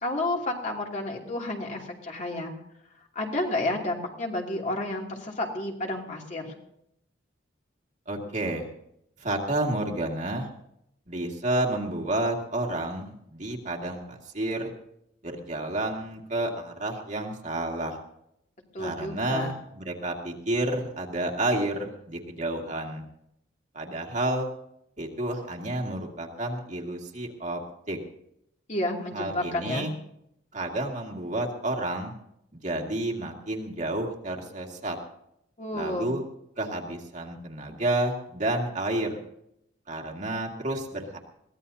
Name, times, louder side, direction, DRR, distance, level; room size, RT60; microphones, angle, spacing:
voice 1, 0.0-2.5 3.1-6.5 18.7-19.5 28.7-29.9 35.6-36.1, left 2 dB, 40° left, 0 dB, 2.7 m, -31 dB
voice 2, 8.1-8.7 9.2-10.5 11.1-14.7 15.2-18.0 18.8-23.0 23.7-24.5 25.0-27.6 27.9-28.0 29.1-29.9 30.5-32.1 32.5-35.0 35.7-36.2 36.6-39.2 39.9-41.2, right 1 dB, 40° right, 0 dB, 2.2 m, -30 dB
22.5 x 17.0 x 2.8 m, 0.76 s
head